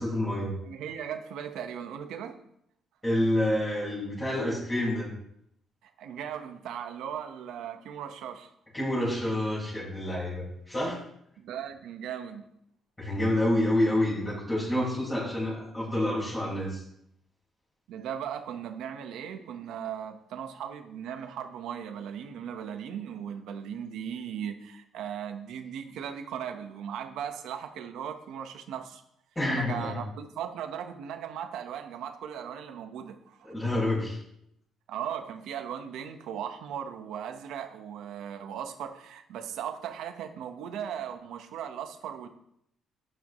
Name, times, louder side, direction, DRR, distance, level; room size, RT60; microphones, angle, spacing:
voice 1, 0.0-0.5 3.0-5.1 8.7-11.0 13.0-16.8 29.4-30.0 33.5-34.2, left 1 dB, 10° left, -9 dB, 5.2 m, -28 dB
voice 2, 0.6-2.4 5.8-8.5 11.4-12.5 17.9-29.0 29.5-33.5 34.9-42.3, right 8 dB, 85° right, 6 dB, 1.3 m, -38 dB
12.0 x 9.8 x 3.2 m, 0.73 s
cardioid pair, 135°, 0 cm